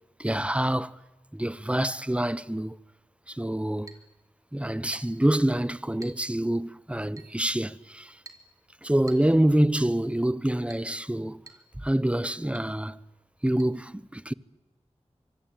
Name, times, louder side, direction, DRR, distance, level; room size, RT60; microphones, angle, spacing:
voice 1, 0.2-1.0 1.3-2.8 3.3-3.9 4.5-8.2 8.8-11.4 11.8-13.0 13.4-14.3, right 1 dB, 10° right, 0.9 m, -26 dB
Chink clink, 3.9-4.1 4.9-5.2 6.0-6.2 7.2-7.4 8.3-8.5 9.1-9.3 9.8-10.0 10.7-10.9 11.5-11.7 11.9-12.0 12.5-12.7 13.6-13.7, right 3 dB, 30° right, 3.3 m, -48 dB
25.0 x 24.0 x 9.1 m
wide cardioid pair, 60°, 11 cm